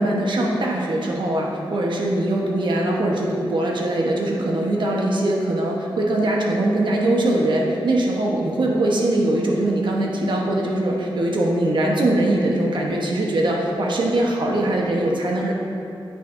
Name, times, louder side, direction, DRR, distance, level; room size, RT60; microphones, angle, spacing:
voice 1, 0.0-15.5, right 1 dB, 60° right, -2 dB, 0.9 m, -21 dB
8.7 x 5.7 x 2.5 m, 2.7 s
wide cardioid pair, 160°, 9 cm